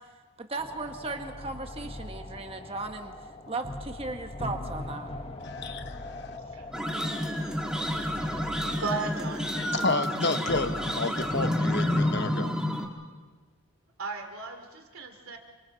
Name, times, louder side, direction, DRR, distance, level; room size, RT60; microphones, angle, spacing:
voice 1, 0.4-3.1 3.5-5.1, right 3 dB, 25° right, 4 dB, 1.4 m, -36 dB
sound 1, 0.6-12.3, left 2 dB, 30° left, 1.0 m, -41 dB
voice 2, 5.4-6.4 9.5-12.5, left 3 dB, 55° left, 9 dB, 1.0 m, -31 dB
sound 2, 6.7-12.8, left 1 dB, 5° right, 1.6 m, -29 dB
voice 3, 8.8-9.5 14.0-15.4, right 4 dB, 85° right, 4 dB, 2.8 m, -35 dB
28.5 x 25.5 x 4.1 m, 1.4 s
head